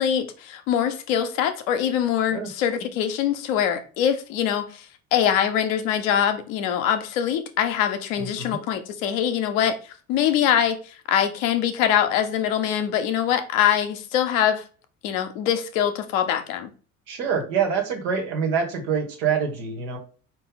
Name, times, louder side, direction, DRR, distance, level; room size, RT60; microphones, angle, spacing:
voice 1, 0.0-4.9 5.1-9.8 10.1-10.8 11.1-14.6 15.0-16.7, left 9 dB, 65° left, 0.8 m, -23 dB
voice 2, 8.2-8.6 17.1-20.0, right 6 dB, 65° right, 1.5 m, -26 dB
4.7 x 2.6 x 3.8 m
figure-of-eight pair, 65°, 43 cm